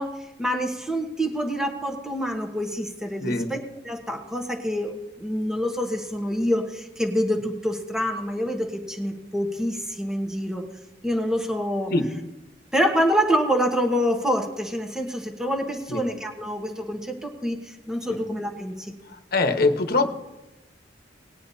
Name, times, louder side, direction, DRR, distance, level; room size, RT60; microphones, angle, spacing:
voice 1, 0.0-10.6 11.0-11.9 12.7-18.9, equal, 5° right, 3 dB, 1.2 m, -26 dB
voice 2, 3.2-3.5 11.9-12.1 15.9-16.0 18.1-18.2 19.3-20.1, left 3 dB, 60° left, 6 dB, 1.1 m, -22 dB
19.5 x 9.8 x 2.8 m, 0.97 s
head